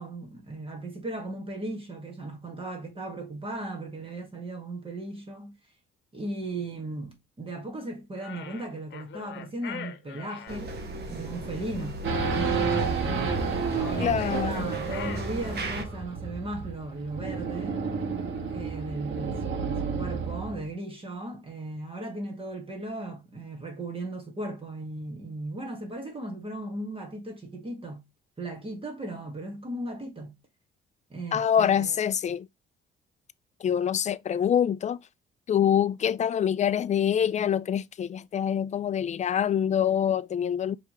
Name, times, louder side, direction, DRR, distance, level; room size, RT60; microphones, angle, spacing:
voice 1, 0.0-5.5 6.1-10.7 11.1-12.0 12.3-13.3 13.7-17.8 18.5-28.0 28.4-30.4 31.1-32.0, right 2 dB, 25° right, 1.7 m, -37 dB
sound 1, 8.2-10.6 13.8-15.9, left 8 dB, 65° left, 0.9 m, -42 dB
sound 2, 10.5-15.8, right 2 dB, 55° right, 1.3 m, -37 dB
Race car auto racing / Idling / Accelerating revving vroom, 12.0-20.6, right 5 dB, 70° right, 1.6 m, -30 dB
voice 2, 14.0-14.7 31.3-32.5 33.6-35.0 35.5-40.8, left 9 dB, 35° left, 0.4 m, -25 dB
4.9 x 3.4 x 3.0 m
cardioid pair, 90°, 20 cm